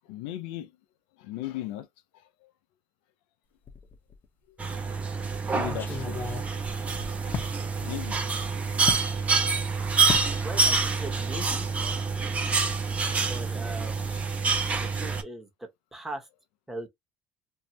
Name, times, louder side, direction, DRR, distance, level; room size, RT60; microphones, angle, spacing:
voice 1, 0.0-0.7 1.2-1.9 2.1-2.5 5.5-6.2 7.8-8.2 9.2-9.4 14.1-14.2, left 14 dB, 85° left, 0.5 m, -37 dB
sound 1, 3.7-4.2 4.6-4.7 5.5-7.6 8.9-9.1 10.1-10.4 10.7-11.0 11.3-11.4, left 5 dB, 40° left, 0.7 m, -36 dB
sound 2, 4.6-15.2, right 4 dB, 25° right, 0.7 m, -27 dB
voice 2, 10.4-11.7 13.2-14.2 14.8-15.5 15.9-16.3 16.7-16.9, right 1 dB, 5° right, 1.0 m, -39 dB
2.7 x 2.1 x 3.0 m
supercardioid pair, 95°, 5 cm